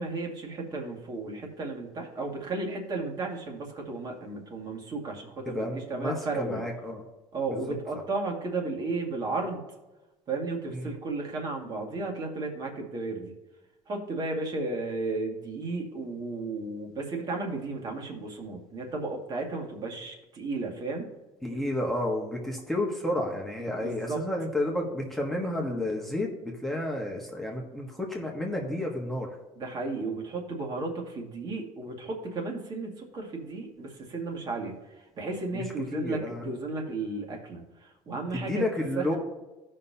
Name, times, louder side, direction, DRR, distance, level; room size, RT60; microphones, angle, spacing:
voice 1, 0.0-6.7 7.3-9.6 10.3-13.3 13.9-21.1 23.6-24.2 29.6-38.7 39.0-39.2, right 3 dB, 40° right, 1 dB, 2.1 m, -34 dB
voice 2, 5.5-7.0 7.5-7.7 10.7-10.9 21.4-29.3 35.5-35.6 35.9-36.4 38.5-39.2, left 1 dB, 5° left, -1 dB, 1.3 m, -31 dB
15.0 x 5.6 x 2.8 m, 1.1 s
cardioid pair, 140°, 11 cm